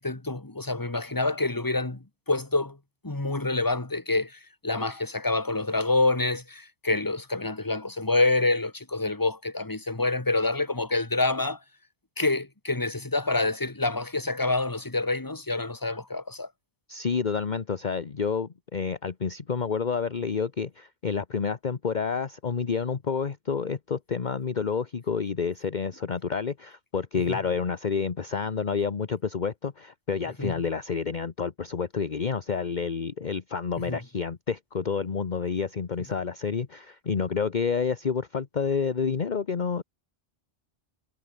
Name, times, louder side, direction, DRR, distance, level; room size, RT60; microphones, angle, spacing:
voice 1, 0.0-2.8 3.0-11.6 12.2-16.5 27.3-27.4 30.4-30.5 33.9-34.0, left 2 dB, 20° left, 1.8 m, -27 dB
voice 2, 16.9-39.8, left 6 dB, 45° left, 1.1 m, -29 dB
omnidirectional pair, 1.2 m